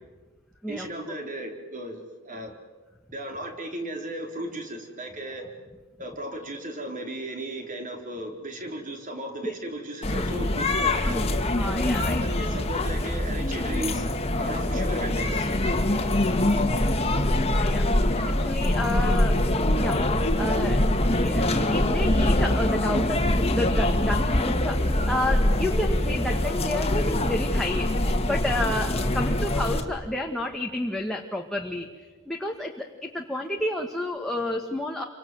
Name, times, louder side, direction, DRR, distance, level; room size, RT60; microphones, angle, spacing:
voice 1, 0.7-2.5 3.1-5.5 6.0-11.2 12.2-14.1 14.4-15.5, right 1 dB, 40° right, 3 dB, 4.4 m, -35 dB
sound 1, 10.0-29.8, left 1 dB, 30° left, 2.0 m, -24 dB
voice 2, 11.6-12.2 17.4-19.4 19.8-20.9 21.2-27.9 28.2-31.9 32.2-35.0, left 1 dB, ahead, 0 dB, 1.7 m, -30 dB
29.5 x 25.5 x 7.8 m, 1.3 s
head